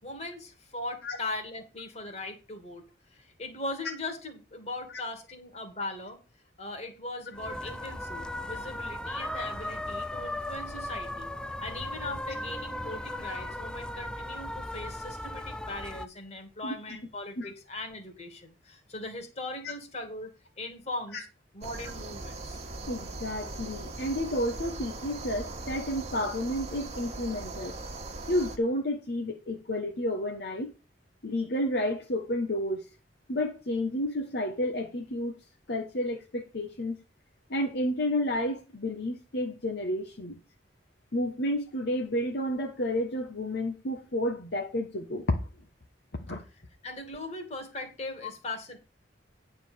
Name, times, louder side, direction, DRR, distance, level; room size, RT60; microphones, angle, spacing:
voice 1, 0.0-2.8 3.1-6.2 6.6-11.3 11.6-21.2 21.5-22.6 46.8-48.8, left 2 dB, 40° left, 2.4 m, -39 dB
sound 1, 7.3-16.1, left 1 dB, 5° left, 0.4 m, -37 dB
voice 2, 16.6-17.0 17.4-17.5 21.1-21.2 22.9-27.7 28.3-30.7 31.2-32.8 33.3-35.4 35.7-37.0 37.5-40.4 41.1-45.4 46.2-46.4, left 1 dB, 65° left, 1.2 m, -31 dB
sound 2, 21.6-28.6, right 2 dB, 35° right, 1.6 m, -40 dB
9.6 x 4.4 x 7.0 m
head